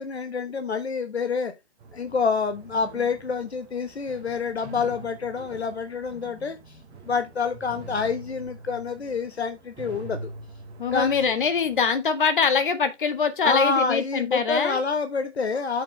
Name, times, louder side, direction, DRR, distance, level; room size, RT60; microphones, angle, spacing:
voice 1, 0.0-1.5 1.9-6.8 7.0-10.3 10.9-11.4 13.4-15.8, left 5 dB, 70° left, 1.3 m, -27 dB
sound 1, 1.8-11.8, right 2 dB, 15° right, 1.8 m, -44 dB
voice 2, 10.8-14.8, left 6 dB, 50° left, 1.6 m, -23 dB
8.2 x 6.5 x 3.3 m
figure-of-eight pair, 150°, 34 cm